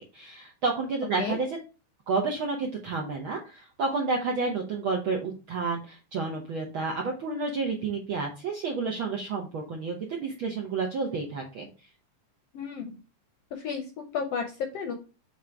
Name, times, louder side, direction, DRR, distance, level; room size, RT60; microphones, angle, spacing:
voice 1, 0.1-1.6 2.1-11.7, right 4 dB, 70° right, 0 dB, 1.2 m, -30 dB
voice 2, 12.5-13.0 13.5-14.9, left 6 dB, 70° left, 4 dB, 1.5 m, -33 dB
7.4 x 3.1 x 4.5 m, 0.32 s
omnidirectional pair, 3.6 m